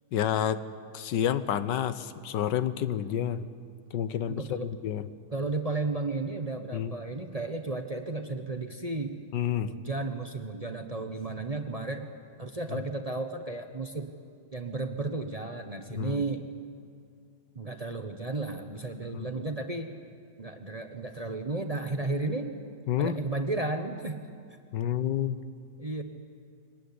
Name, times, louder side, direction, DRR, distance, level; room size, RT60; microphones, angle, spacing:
voice 1, 0.1-0.6 0.9-3.5 3.9-5.1 6.7-6.9 9.3-9.7 15.9-16.2 19.1-19.4 22.9-23.2 24.7-25.4, left 10 dB, 80° left, 13 dB, 1.5 m, -29 dB
voice 2, 4.3-4.7 5.3-9.3 9.6-12.1 12.4-14.1 14.5-16.5 17.5-20.0 20.4-22.6 23.0-24.2 25.8-26.0, right 3 dB, 25° right, 6 dB, 0.9 m, -33 dB
23.0 x 19.0 x 9.7 m, 2.3 s
omnidirectional pair, 1.9 m